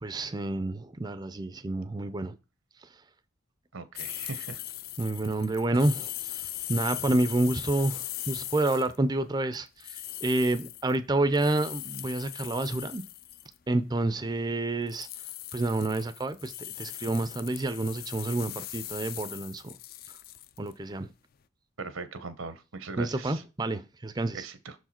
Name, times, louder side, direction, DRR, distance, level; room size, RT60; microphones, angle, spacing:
voice 1, 0.0-2.4 5.0-6.4 6.7-13.0 13.7-15.1 15.5-16.5 16.8-19.8 20.6-21.1 23.0-24.5, right 2 dB, 20° right, 0.4 m, -29 dB
voice 2, 3.7-4.6 21.8-23.4 24.3-24.7, right 4 dB, 85° right, 1.0 m, -40 dB
sound 1, 4.0-9.0 9.5-13.6 14.9-20.7, left 14 dB, 45° left, 0.4 m, -40 dB
6.4 x 4.6 x 4.3 m
head